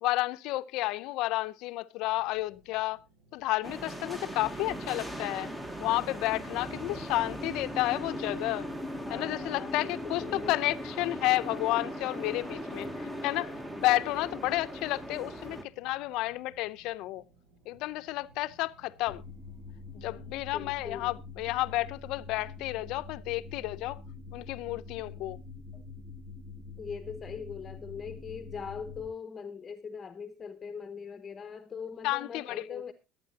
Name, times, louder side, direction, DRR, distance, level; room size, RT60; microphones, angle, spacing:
voice 1, 0.0-3.0 3.3-5.5 5.8-8.7 9.1-17.2 17.7-19.2 19.9-24.0 24.3-25.4 32.0-32.9, left 18 dB, 70° left, 0.6 m, -31 dB
sound 1, 2.0-21.1, right 3 dB, 60° right, 4.9 m, -62 dB
sound 2, 3.6-15.6, equal, 10° right, 1.3 m, -39 dB
voice 2, 9.0-10.5 15.6-15.7 20.5-21.1 25.7-25.8 26.8-32.9, left 6 dB, 25° left, 0.9 m, -41 dB
sound 3, 19.1-29.1, left 4 dB, 40° right, 2.2 m, -45 dB
21.0 x 9.1 x 2.8 m
cardioid pair, 125°, 0 cm